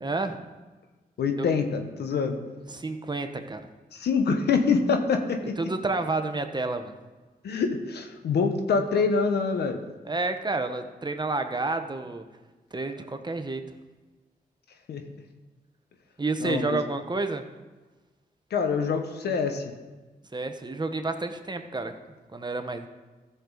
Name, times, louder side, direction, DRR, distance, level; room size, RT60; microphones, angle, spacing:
voice 1, 0.0-0.4 2.7-3.7 5.6-7.0 10.0-12.3 12.7-13.6 16.2-17.4 20.3-21.9 22.3-22.9, right 3 dB, 25° right, 7 dB, 1.1 m, -30 dB
voice 2, 1.2-2.4 3.9-5.6 7.4-9.8 14.9-15.0 16.4-16.8 18.5-19.7, left 5 dB, 85° left, 6 dB, 1.1 m, -25 dB
14.5 x 6.8 x 3.9 m, 1.2 s
cardioid pair, 55°, 17 cm